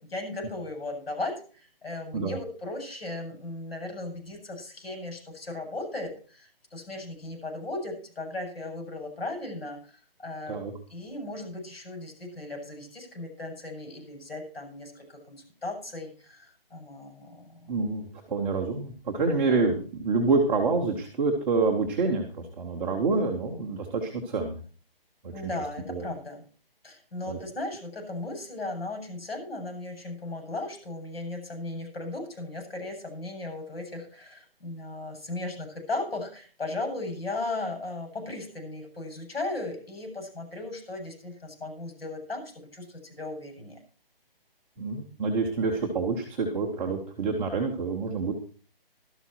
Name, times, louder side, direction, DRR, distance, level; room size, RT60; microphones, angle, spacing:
voice 1, 0.1-9.8 10.2-10.6 10.9-17.7 19.2-19.6 25.3-26.4 26.8-43.8, left 2 dB, 75° left, 5 dB, 7.5 m, -36 dB
voice 2, 17.7-24.6 25.2-25.3 25.9-26.0 27.3-27.4 44.8-48.3, right 4 dB, 5° right, -5 dB, 0.6 m, -27 dB
13.0 x 12.5 x 4.4 m, 0.40 s
hypercardioid pair, 160°, 30 cm